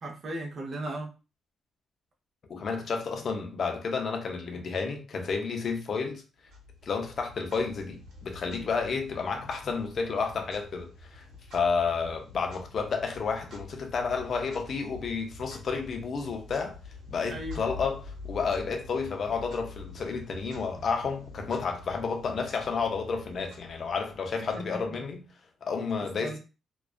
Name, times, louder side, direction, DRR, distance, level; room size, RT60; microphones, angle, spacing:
voice 1, 0.0-1.1 17.3-17.6 24.5-25.0 26.2-26.4, right 1 dB, 45° right, 0.7 m, -36 dB
voice 2, 2.5-6.2 6.8-11.2 11.5-16.8 17.1-25.2 25.6-26.4, left 5 dB, 45° left, 0.5 m, -31 dB
Clock, 6.5-25.2, left 2 dB, 80° right, 0.9 m, -47 dB
2.3 x 2.2 x 2.4 m
cardioid pair, 135°, 0 cm